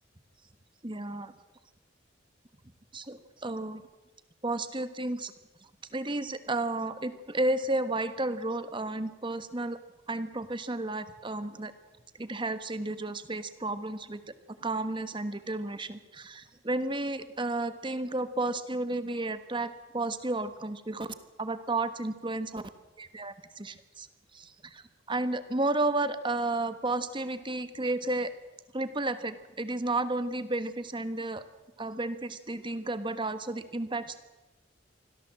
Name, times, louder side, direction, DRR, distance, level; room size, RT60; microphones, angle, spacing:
voice 1, 0.8-1.3 2.9-3.8 4.4-5.3 5.9-9.8 10.1-11.7 12.2-14.3 14.6-21.1 21.4-22.6 23.0-24.1 24.3-28.3 28.7-31.4 31.8-34.2, right 2 dB, 25° right, 11 dB, 1.3 m, -32 dB
25.5 x 16.5 x 7.6 m, 1.1 s
head